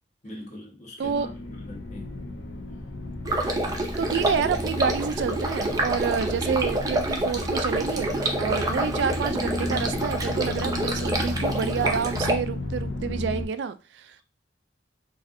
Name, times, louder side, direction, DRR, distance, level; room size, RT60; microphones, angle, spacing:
voice 1, 0.2-2.1 8.5-9.0, left 1 dB, 40° left, 1.1 m, -42 dB
sound 1, 1.0-13.4, left 1 dB, 80° left, 0.6 m, -33 dB
Stream, 3.3-12.3, right 1 dB, 20° right, 0.5 m, -28 dB
voice 2, 4.0-14.2, right 6 dB, 70° right, 0.3 m, -29 dB
4.1 x 2.5 x 2.5 m
head